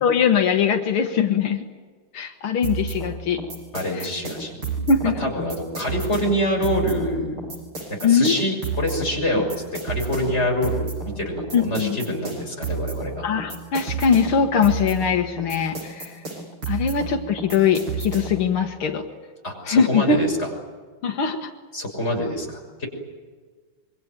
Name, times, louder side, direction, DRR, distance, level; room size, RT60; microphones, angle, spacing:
voice 1, 0.0-1.7 2.1-3.4 3.9-4.1 4.9-5.1 8.0-8.3 11.5-12.0 13.2-16.2 16.7-19.0 19.7-20.2 21.0-21.5, left 6 dB, 90° left, 5 dB, 2.3 m, -21 dB
sound 1, 2.6-18.5, right 4 dB, 85° right, 8.5 m, -31 dB
voice 2, 3.7-4.6 5.2-7.4 8.0-9.5 9.8-13.3 16.9-17.0 19.4-20.5 21.7-22.9, left 1 dB, 30° left, 1 dB, 6.7 m, -26 dB
26.5 x 23.0 x 9.2 m, 1.5 s
omnidirectional pair, 2.2 m